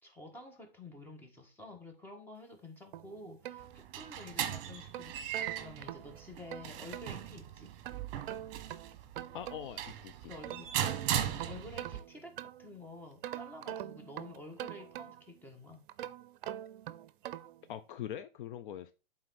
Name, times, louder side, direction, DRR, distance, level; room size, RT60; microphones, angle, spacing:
voice 1, 0.0-7.7 10.3-10.7 11.2-15.8, left 2 dB, 5° left, 2 dB, 1.6 m, -50 dB
sound 1, 2.9-4.3 4.7-7.1 7.8-9.9 10.2-12.8 13.2-15.4 15.9-17.6, right 12 dB, 60° right, 0.6 m, -44 dB
sound 2, 3.6-12.0, right 10 dB, 40° right, 1.3 m, -38 dB
voice 2, 9.3-10.3 17.7-18.9, left 10 dB, 60° left, 12 dB, 0.6 m, -43 dB
8.8 x 3.8 x 4.1 m, 0.31 s
hypercardioid pair, 130°, 30 cm